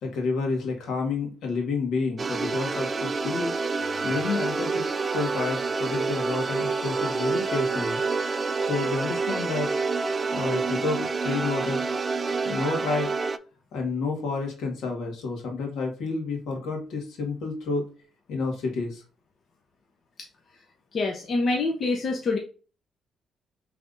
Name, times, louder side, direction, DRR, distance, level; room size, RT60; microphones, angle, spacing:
voice 1, 0.0-3.5 4.0-8.0 8.6-9.7 10.3-11.8 12.4-13.1 13.7-17.8 18.3-19.0, left 4 dB, 80° left, 1 dB, 1.6 m, -29 dB
sound 1, 2.2-13.4, right 4 dB, 35° right, 0.3 m, -28 dB
voice 2, 20.9-22.4, left 3 dB, 50° left, 1 dB, 0.7 m, -25 dB
5.2 x 3.3 x 2.6 m, 0.37 s
cardioid pair, 90°, 0 cm